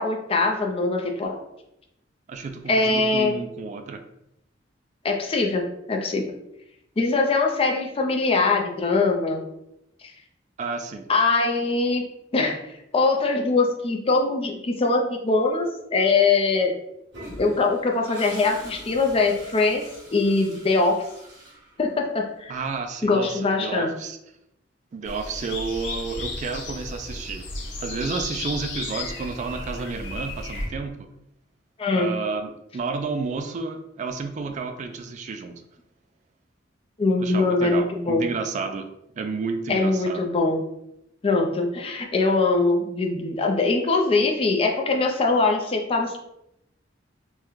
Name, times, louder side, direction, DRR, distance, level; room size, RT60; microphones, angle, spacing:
voice 1, 0.0-1.4 2.7-3.3 5.0-6.3 7.0-9.4 11.1-12.0 12.3-12.6 12.9-16.7 17.4-19.8 20.1-21.0 21.8-22.6 23.0-23.9 31.8-32.1 37.0-38.3 39.7-40.6 41.2-46.2, left 3 dB, 30° left, 2 dB, 0.4 m, -22 dB
voice 2, 2.3-4.0 10.6-11.1 22.5-24.2 24.9-27.4 27.8-31.1 31.9-35.6 37.2-38.9 39.2-40.3, right 4 dB, 40° right, 6 dB, 0.3 m, -31 dB
Toilet flush, 17.1-22.2, right 1 dB, 70° right, 1.2 m, -43 dB
sound 1, 25.1-30.7, left 2 dB, 70° left, 0.7 m, -34 dB
3.6 x 2.1 x 3.0 m, 0.82 s
head